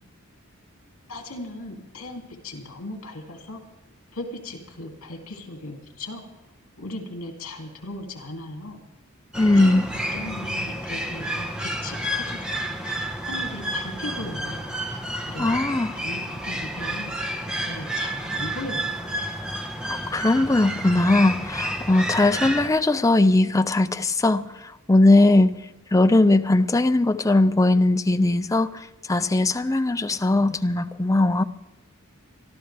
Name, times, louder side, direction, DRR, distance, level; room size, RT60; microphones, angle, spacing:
voice 1, 1.1-3.6 4.1-6.2 6.8-8.8 9.5-9.8 10.1-12.7 13.2-14.7 15.2-19.0, left 2 dB, 75° left, 2.7 m, -37 dB
sound 1, 9.3-22.7, right 1 dB, 5° right, 1.2 m, -30 dB
voice 2, 9.4-9.8 15.4-15.9 19.9-25.5 25.9-31.4, left 2 dB, 15° left, 0.5 m, -19 dB
24.5 x 13.0 x 3.4 m
head